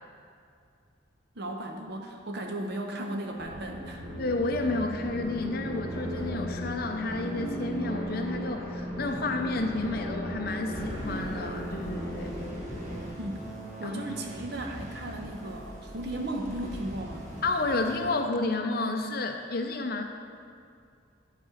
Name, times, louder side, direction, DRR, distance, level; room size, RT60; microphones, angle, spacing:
voice 1, 1.3-4.0 13.2-13.5 13.8-17.3, right 1 dB, 60° right, 2 dB, 0.9 m, -35 dB
sound 1, 3.4-13.1, equal, 20° right, 1.5 m, -37 dB
sound 2, 4.0-11.2, right 1 dB, 20° left, 2.1 m, -42 dB
voice 2, 4.2-12.4 13.8-14.0 17.4-20.0, left 2 dB, 50° left, 5 dB, 0.6 m, -31 dB
sound 3, 10.7-18.1, right 1 dB, 40° right, 1.3 m, -43 dB
10.5 x 4.1 x 5.0 m, 2.4 s
head